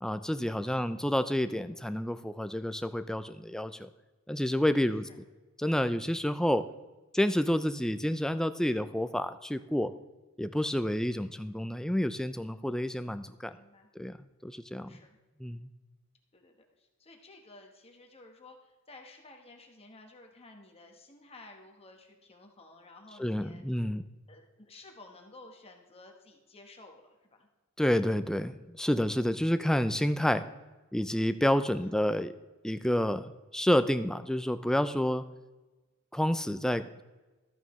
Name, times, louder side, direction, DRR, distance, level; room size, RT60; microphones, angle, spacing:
voice 1, 0.0-3.9 4.3-5.2 5.6-6.7 7.1-9.9 10.4-13.5 14.0-14.2 14.4-14.9 15.4-15.7 23.2-24.0 27.8-30.4 30.9-32.3 32.6-35.2 36.1-37.0, equal, 5° left, 11 dB, 0.4 m, -29 dB
voice 2, 13.5-13.9 14.9-15.2 16.3-23.6 24.3-27.5 31.7-31.9, left 2 dB, 25° left, 3 dB, 1.2 m, -54 dB
13.0 x 9.0 x 3.1 m, 1.2 s
head